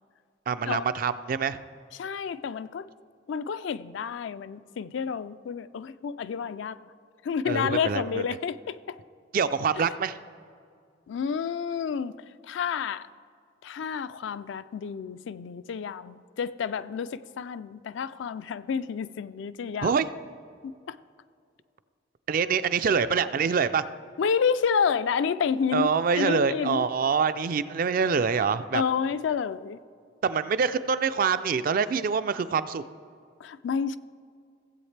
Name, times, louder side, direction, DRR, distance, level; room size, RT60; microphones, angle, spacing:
voice 1, 0.5-1.6 7.5-8.2 9.3-10.2 19.8-20.1 22.3-23.8 25.7-28.8 30.2-32.8, right 6 dB, 45° right, 0.3 m, -25 dB
voice 2, 1.9-2.9 3.3-6.8 7.2-8.8 11.1-12.2 12.5-13.1 13.6-19.9 20.6-21.0 24.2-25.9 26.1-26.9 28.7-29.8 33.4-34.0, left 6 dB, 70° left, 0.3 m, -29 dB
16.0 x 7.9 x 3.3 m
head